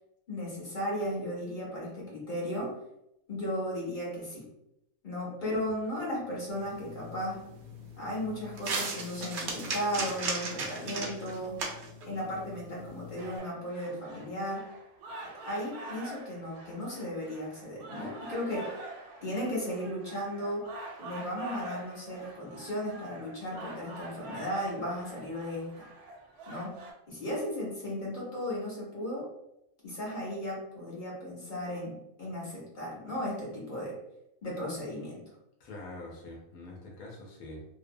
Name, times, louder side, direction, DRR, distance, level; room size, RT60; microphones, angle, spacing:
voice 1, 0.3-2.7 3.3-4.5 5.0-7.4 8.0-11.6 12.0-14.7 15.5-18.7 19.2-20.7 21.0-25.9 26.5-26.7 27.1-29.3 29.8-34.0 34.4-35.2, equal, 45° left, -5 dB, 0.7 m, -35 dB
sound 1, 6.5-13.4, right 3 dB, 65° right, 0.7 m, -38 dB
sound 2, 13.2-26.9, right 2 dB, 90° right, 1.1 m, -46 dB
voice 2, 35.6-37.7, left 2 dB, 85° left, -1 dB, 1.0 m, -45 dB
2.6 x 2.0 x 2.5 m, 0.83 s
omnidirectional pair, 1.5 m